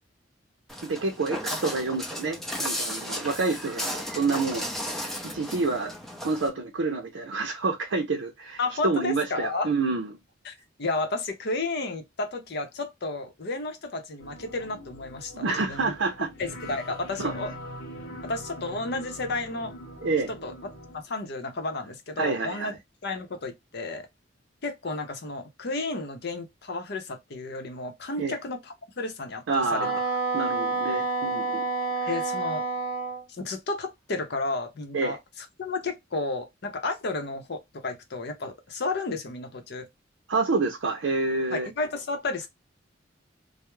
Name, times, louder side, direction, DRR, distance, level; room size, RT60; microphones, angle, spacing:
Walk footsteps, 0.7-6.5, equal, ahead, 0.5 m, -34 dB
voice 1, 0.8-5.9 6.2-10.1 15.3-16.3 17.2-17.4 20.0-20.3 22.2-22.7 28.2-28.4 29.5-30.1 30.3-31.7 34.9-35.2 40.3-41.7, right 3 dB, 80° right, 0.5 m, -28 dB
voice 2, 8.6-9.7 10.4-10.5 10.8-15.9 16.4-17.5 18.3-19.7 20.3-20.5 20.9-22.7 23.0-24.1 24.6-29.9 32.1-32.7 33.4-35.2 35.6-39.9 41.5-42.5, left 3 dB, 60° left, 0.6 m, -32 dB
sound 1, 14.2-21.0, equal, 85° left, 0.8 m, -42 dB
Wind instrument woodwind instrument, 29.8-33.2, right 4 dB, 50° right, 0.8 m, -28 dB
2.3 x 2.0 x 3.0 m
head